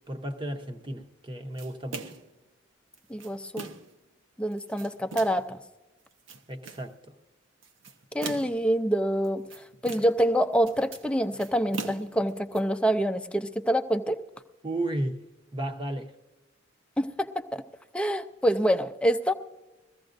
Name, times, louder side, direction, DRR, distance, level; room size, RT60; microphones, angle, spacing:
voice 1, 0.1-2.2 6.5-7.2 14.6-15.2 15.5-16.1, right 1 dB, 25° right, 0.8 m, -33 dB
sound 1, 1.6-2.3 2.9-4.0 4.5-5.5 6.0-6.9 7.6-8.7 9.2-10.3 10.5-12.6, right 4 dB, 90° right, 1.0 m, -41 dB
voice 2, 3.1-3.7 4.4-5.6 8.1-14.2 17.0-17.6 17.9-19.3, equal, 5° left, 0.5 m, -26 dB
21.0 x 15.0 x 2.6 m
head